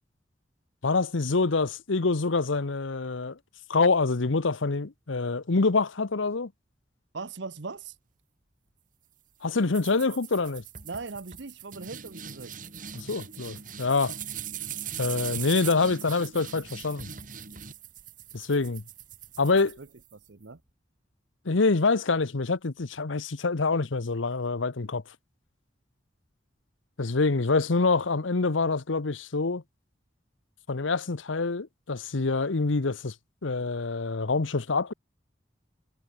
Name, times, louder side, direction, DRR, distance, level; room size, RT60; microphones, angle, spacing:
voice 1, 0.8-3.4 3.7-6.5 9.4-10.6 12.9-14.1 15.0-17.1 18.3-18.8 19.4-19.8 21.4-25.0 27.0-29.6 30.7-33.1 33.4-34.9, left 3 dB, 85° left, 0.9 m, -26 dB
voice 2, 7.1-7.9 10.8-12.5 19.6-19.9 20.3-20.6, right 4 dB, 70° right, 0.9 m, -39 dB
sound 1, 9.7-20.3, right 9 dB, 45° right, 3.5 m, -40 dB
head